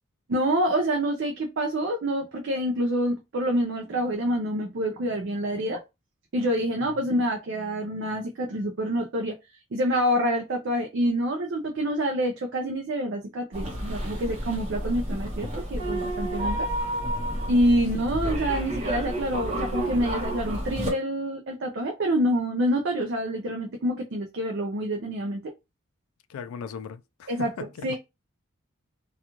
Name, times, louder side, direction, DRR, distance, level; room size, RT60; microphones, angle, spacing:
voice 1, 0.3-5.8 6.3-9.3 9.7-16.7 17.5-25.4 27.3-27.5 27.8-28.0, equal, 55° right, 0.4 m, -27 dB
sound 1, 13.5-20.9, right 1 dB, 30° right, 0.8 m, -30 dB
voice 2, 26.3-28.0, left 6 dB, 85° left, 0.3 m, -38 dB
2.4 x 2.3 x 2.9 m
head